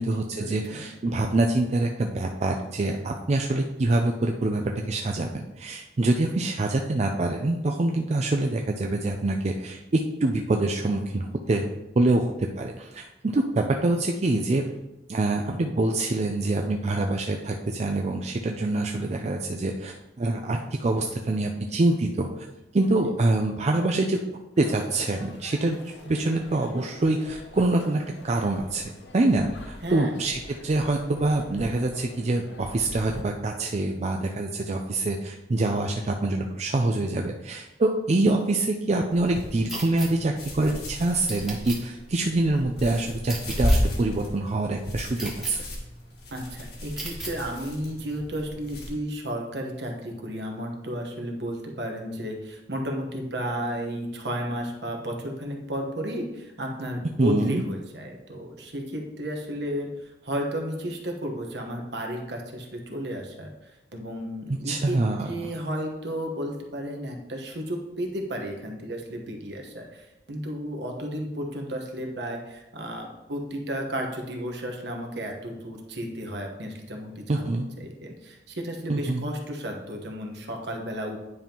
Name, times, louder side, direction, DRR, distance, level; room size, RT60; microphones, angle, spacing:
voice 1, 0.0-11.7 12.0-14.6 15.1-22.5 22.7-45.6 57.2-57.6 64.6-65.5 77.3-77.7 78.9-79.3, right 2 dB, 40° right, 2 dB, 0.4 m, -25 dB
sound 1, 24.6-33.2, left 1 dB, 85° left, 1.0 m, -45 dB
voice 2, 29.8-30.1 46.3-65.0 65.3-77.5 77.8-81.2, equal, 70° right, 2 dB, 1.2 m, -33 dB
sound 2, 39.1-48.9, left 1 dB, 60° left, 1.8 m, -33 dB
sound 3, 39.7-40.1 41.3-41.8 43.2-43.8 45.2-45.5 47.0-47.3, right 2 dB, ahead, 1.4 m, -35 dB
9.7 x 5.3 x 2.9 m, 0.96 s
head